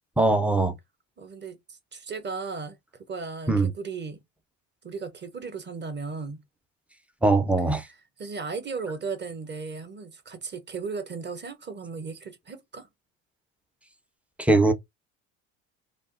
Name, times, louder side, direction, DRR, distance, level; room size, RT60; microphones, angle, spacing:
voice 1, 0.2-0.8 3.5-3.7 7.2-7.9 14.4-14.7, right 2 dB, 5° right, 0.4 m, -21 dB
voice 2, 1.2-2.8 3.1-4.2 4.8-6.4 7.8-12.9, right 4 dB, 30° right, 0.9 m, -36 dB
3.3 x 2.0 x 2.6 m
hypercardioid pair, 75°, 38 cm